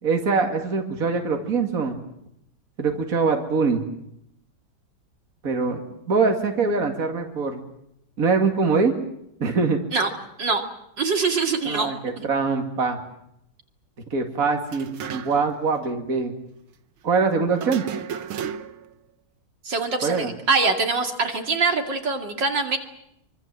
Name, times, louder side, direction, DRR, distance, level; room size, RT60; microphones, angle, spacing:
voice 1, 0.0-2.0 2.8-3.8 5.4-5.8 6.1-7.6 8.2-8.9 9.4-9.8 11.6-13.0 14.1-16.3 17.0-17.9 20.0-20.3, right 4 dB, 45° right, 3 dB, 2.7 m, -23 dB
voice 2, 11.0-11.9 12.2-12.3 19.6-22.8, right 4 dB, 65° right, 4 dB, 3.1 m, -23 dB
sound 1, 14.6-15.6 15.8-15.9 17.6-18.9, right 8 dB, 90° right, 2.0 m, -34 dB
25.0 x 24.5 x 7.6 m, 0.77 s
omnidirectional pair, 2.2 m